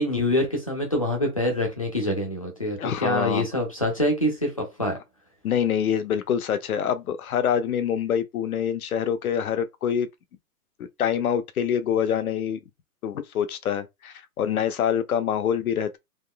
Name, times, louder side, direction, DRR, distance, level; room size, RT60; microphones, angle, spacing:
voice 1, 0.0-5.0, left 1 dB, 25° left, 0.5 m, -25 dB
voice 2, 2.8-3.4 5.4-10.1 11.0-12.6 13.0-16.0, left 8 dB, 65° left, 0.7 m, -25 dB
3.6 x 2.7 x 2.2 m
hypercardioid pair, 175°, 46 cm